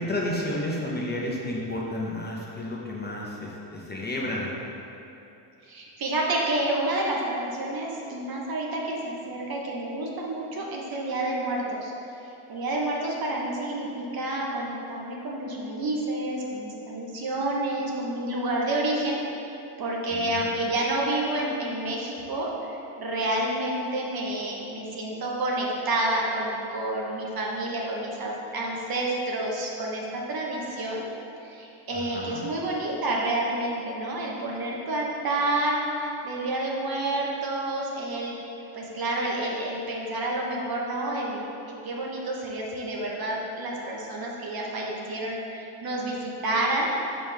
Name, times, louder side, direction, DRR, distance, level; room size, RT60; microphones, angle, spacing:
voice 1, 0.0-4.5 20.1-20.5 31.9-32.4, left 1 dB, 20° left, -4 dB, 0.9 m, -31 dB
voice 2, 5.6-11.9 12.5-19.2 19.8-31.0 31.4-38.3 38.7-41.4 41.8-46.9, right 1 dB, 45° right, -2 dB, 1.1 m, -29 dB
5.4 x 5.2 x 3.4 m, 2.9 s
supercardioid pair, 85°, 50 cm